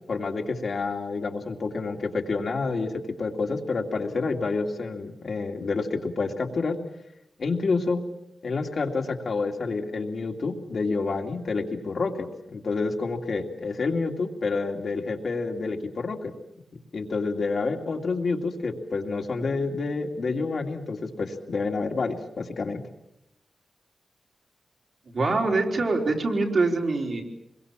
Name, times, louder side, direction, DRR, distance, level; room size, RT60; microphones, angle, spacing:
voice 1, 0.1-6.7 7.4-8.0 8.4-16.3 16.9-22.8, left 4 dB, 55° left, 3 dB, 2.5 m, -28 dB
voice 2, 25.1-27.2, right 3 dB, 50° right, 1 dB, 4.0 m, -24 dB
27.5 x 22.5 x 7.4 m, 0.85 s
wide cardioid pair, 170°, 0 cm